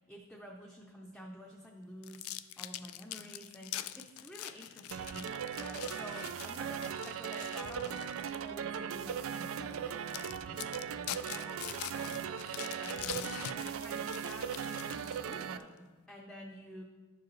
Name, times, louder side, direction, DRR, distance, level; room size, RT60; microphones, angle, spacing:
voice 1, 0.0-16.8, equal, ahead, -2 dB, 0.5 m, -50 dB
sound 1, 2.0-8.5 9.0-9.2 9.7-9.8 10.1-15.6, left 13 dB, 80° left, 0.3 m, -44 dB
sound 2, 4.9-15.6, right 8 dB, 70° right, 0.3 m, -39 dB
11.5 x 4.8 x 3.1 m, 1.3 s
head